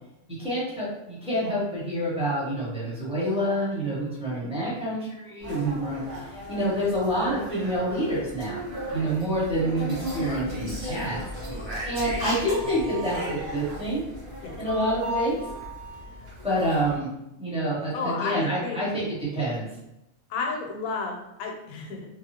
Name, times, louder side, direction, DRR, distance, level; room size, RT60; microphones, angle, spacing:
voice 1, 0.4-6.2 6.5-8.6 8.9-11.2 11.9-14.0 14.6-15.4 16.4-17.1 17.4-19.7, right 1 dB, 5° right, -8 dB, 0.9 m, -27 dB
voice 2, 4.0-4.5 14.4-14.6 17.9-18.8 20.3-22.1, left 4 dB, 85° left, 1 dB, 1.1 m, -32 dB
sound 1, 5.4-17.0, equal, 60° right, 1.2 m, -36 dB
Speech, 9.9-13.8, right 1 dB, 35° right, 0.4 m, -36 dB
2.8 x 2.3 x 2.8 m, 0.88 s
omnidirectional pair, 1.5 m